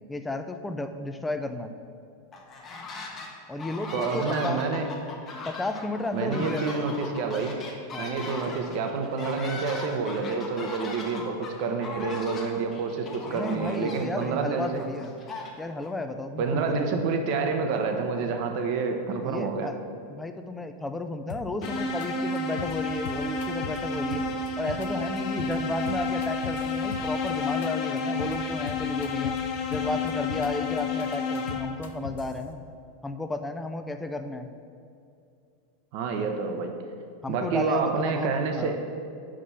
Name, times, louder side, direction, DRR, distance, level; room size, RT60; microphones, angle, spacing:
voice 1, 0.1-1.7 3.5-4.6 5.4-6.8 7.9-8.2 13.3-15.2 15.6-17.0 19.2-19.7 20.1-24.2 24.6-29.4 29.7-32.6 33.0-34.5 37.2-38.8, left 2 dB, 10° left, 7 dB, 0.4 m, -33 dB
sound 1, 2.3-3.3 3.6-15.9, left 3 dB, 25° left, 1.0 m, -39 dB
voice 2, 3.9-4.9 6.1-7.6 8.0-14.8 16.4-19.7 35.9-36.7 37.3-38.8, right 4 dB, 55° right, 5 dB, 0.8 m, -28 dB
sound 2, 21.3-21.7 22.0-22.1 22.4-22.7 23.1-23.8 24.1-24.9 25.2-25.5 25.9-27.3 27.6-27.7 28.0-28.3 28.7-29.4 29.7-30.5 30.8-32.3, left 6 dB, 80° left, 0.5 m, -38 dB
sound 3, 21.6-32.0, left 4 dB, 45° left, 0.8 m, -30 dB
5.2 x 5.0 x 5.7 m, 2.5 s
supercardioid pair, 130°, 0 cm